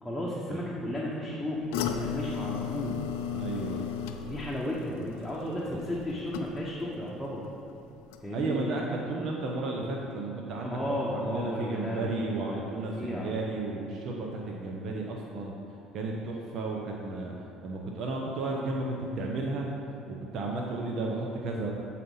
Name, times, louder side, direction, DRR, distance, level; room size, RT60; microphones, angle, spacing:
voice 1, 0.0-3.0 4.3-7.5 8.2-8.7 10.6-13.3, left 1 dB, 5° left, -6 dB, 1.1 m, -34 dB
sound 1, 1.7-6.9 7.2-7.7 8.1-8.2, left 8 dB, 85° left, 0.4 m, -35 dB
voice 2, 3.3-3.9 5.7-6.0 8.3-10.8 11.1-15.5 15.9-17.3 17.6-19.7 20.1-21.7, right 3 dB, 60° right, -1 dB, 0.9 m, -33 dB
7.6 x 4.2 x 5.6 m, 3.0 s
supercardioid pair, 85°, 0 cm